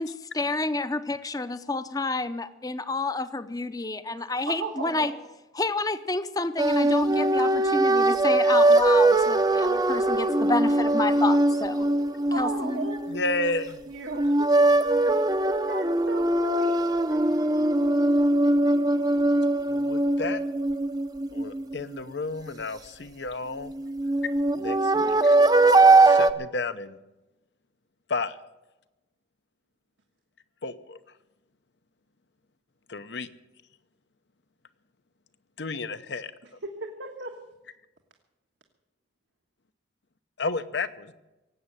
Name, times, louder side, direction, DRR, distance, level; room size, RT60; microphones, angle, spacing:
voice 1, 0.0-5.1 5.5-11.9 12.4-12.9, left 3 dB, 20° left, 12 dB, 0.7 m, -29 dB
voice 2, 4.5-5.1 12.3-13.6 13.9-17.7 36.6-37.4, right 3 dB, 85° right, 2 dB, 1.5 m, -37 dB
sound 1, 6.6-13.6 14.1-22.0 23.7-26.3, right 2 dB, 20° right, 0.6 m, -21 dB
voice 3, 13.1-13.7 19.7-20.4 21.3-23.7 24.5-25.4 26.0-27.0 28.1-28.4 30.6-31.0 32.9-33.3 35.6-36.3 40.4-41.1, left 3 dB, 70° left, 12 dB, 0.9 m, -32 dB
18.0 x 8.3 x 8.9 m, 1.0 s
head